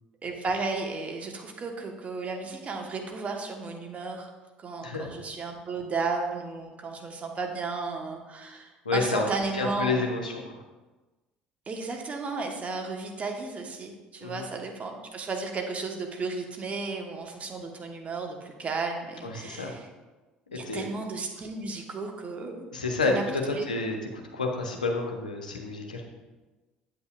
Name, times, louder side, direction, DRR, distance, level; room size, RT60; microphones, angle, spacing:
voice 1, 0.2-4.3 4.6-10.1 11.7-19.9 20.5-22.7 23.1-23.7, right 3 dB, 35° right, 2 dB, 1.3 m, -34 dB
voice 2, 4.8-5.1 8.8-9.2 9.5-10.6 14.2-14.4 19.2-19.7 20.5-20.9 22.7-26.0, left 3 dB, 85° left, 2 dB, 0.9 m, -29 dB
8.6 x 8.2 x 2.5 m, 1.2 s
figure-of-eight pair, 60°, 4 cm